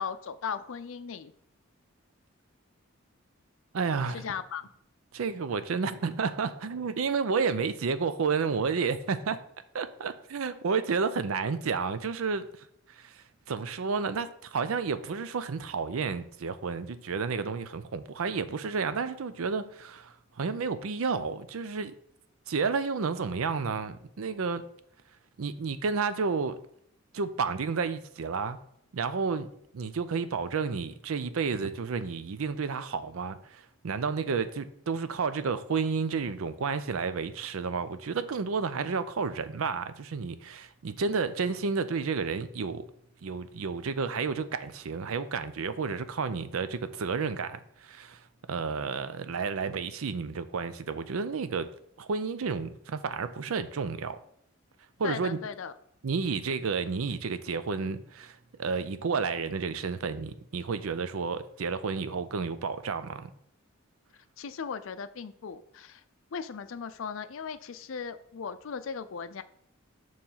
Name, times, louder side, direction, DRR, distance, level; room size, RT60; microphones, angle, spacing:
voice 1, 0.0-1.3 4.1-4.6 55.0-55.7 64.4-66.0 66.3-69.4, left 6 dB, 70° left, 0.4 m, -37 dB
voice 2, 3.7-4.3 5.1-9.4 9.7-12.5 13.0-21.9 22.5-24.6 25.4-26.6 27.1-28.6 28.9-29.5 29.7-42.8 43.2-48.2 48.5-51.7 52.0-54.2 55.0-55.4 56.0-63.3, right 5 dB, 80° right, 0.5 m, -31 dB
6.8 x 3.1 x 5.6 m
head